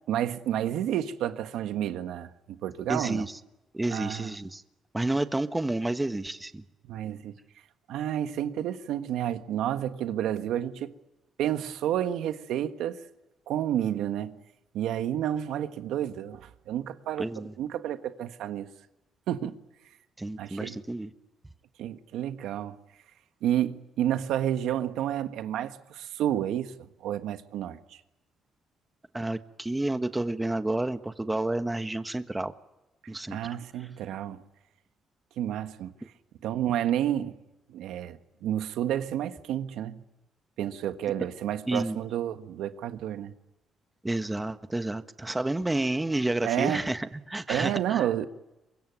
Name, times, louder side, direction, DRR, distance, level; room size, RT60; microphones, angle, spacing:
voice 1, 0.0-3.3 3.9-4.3 6.9-7.3 7.9-10.9 11.4-13.0 13.5-14.4 14.7-18.7 19.3-19.6 20.4-20.8 21.8-22.7 23.4-26.7 27.0-27.8 33.3-34.4 35.4-35.9 36.4-37.4 37.7-40.0 40.6-43.3 46.4-46.8 47.5-48.3, right 11 dB, 85° right, 1.5 m, -30 dB
voice 2, 2.9-3.4 3.7-4.6 4.9-6.6 17.2-17.5 20.2-21.1 29.1-32.5 33.1-33.4 33.8-33.9 41.7-42.0 44.0-48.1, right 2 dB, 15° right, 1.4 m, -30 dB
24.5 x 21.5 x 9.4 m
cardioid pair, 90°, 0 cm